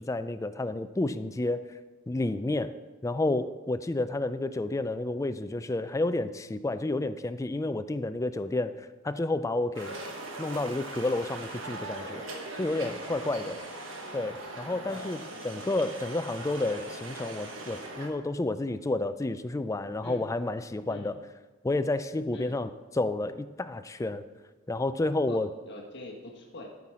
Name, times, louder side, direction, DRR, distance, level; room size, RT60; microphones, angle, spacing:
voice 1, 0.0-1.7 2.1-2.7 3.0-10.0 10.4-12.2 12.6-13.5 14.1-15.2 15.4-21.1 21.6-24.2 24.7-25.5, left 2 dB, 15° left, 11 dB, 0.3 m, -30 dB
sound 1, 9.7-18.1, right 2 dB, 75° right, 1.4 m, -40 dB
voice 2, 25.3-26.7, left 1 dB, 60° left, -1 dB, 1.5 m, -44 dB
13.0 x 5.7 x 4.8 m, 1.2 s
head